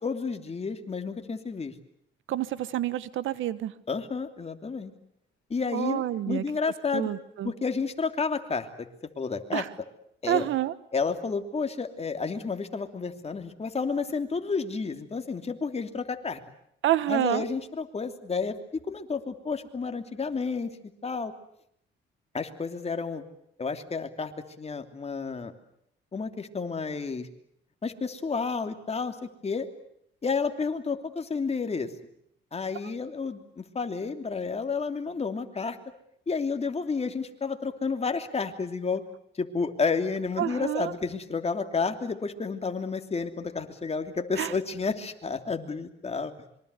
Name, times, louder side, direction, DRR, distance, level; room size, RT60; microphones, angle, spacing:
voice 1, 0.0-1.7 3.9-4.9 5.5-7.1 7.4-8.9 9.2-9.7 10.2-10.5 10.9-16.4 17.1-18.6 18.9-20.7 21.0-21.3 22.3-23.2 23.6-24.3 24.6-25.5 26.1-27.3 27.8-29.2 29.4-29.7 30.2-31.9 32.5-35.8 36.3-39.0 39.4-46.3, left 4 dB, 30° left, 6 dB, 3.0 m, -31 dB
voice 2, 2.3-3.7 5.7-6.4 6.9-7.5 9.5-9.7 10.3-10.7 16.8-17.4 40.4-40.9 44.4-44.5, right 13 dB, 80° right, 16 dB, 1.3 m, -28 dB
26.0 x 23.5 x 8.3 m, 0.72 s
cardioid pair, 90°, 20 cm